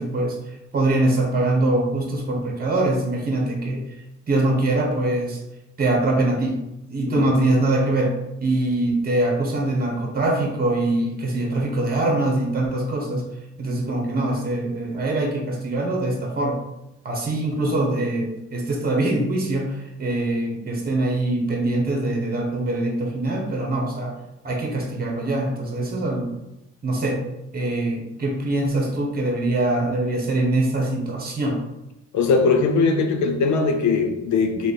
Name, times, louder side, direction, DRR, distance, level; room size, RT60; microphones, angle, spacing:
voice 1, 0.0-3.8 4.3-5.4 5.8-6.6 6.9-8.1 8.4-13.2 13.6-16.6 17.0-24.1 24.4-26.4 26.8-27.2 27.5-31.6, right 2 dB, 30° right, 0 dB, 0.9 m, -23 dB
voice 2, 32.1-34.7, left 4 dB, 70° left, 5 dB, 0.6 m, -20 dB
3.2 x 2.1 x 4.1 m, 0.92 s
cardioid pair, 90°, 30 cm